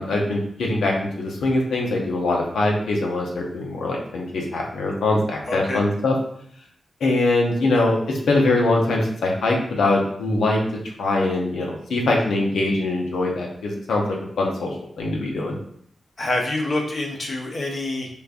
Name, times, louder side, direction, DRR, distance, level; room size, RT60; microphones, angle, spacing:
voice 1, 0.0-6.2 7.0-10.6 11.0-14.0 14.4-15.6, left 2 dB, 85° left, -1 dB, 0.7 m, -22 dB
voice 2, 5.5-5.8 16.2-18.1, left 2 dB, 60° left, -1 dB, 0.9 m, -26 dB
5.1 x 2.2 x 2.5 m, 0.66 s
cardioid pair, 50°, 0 cm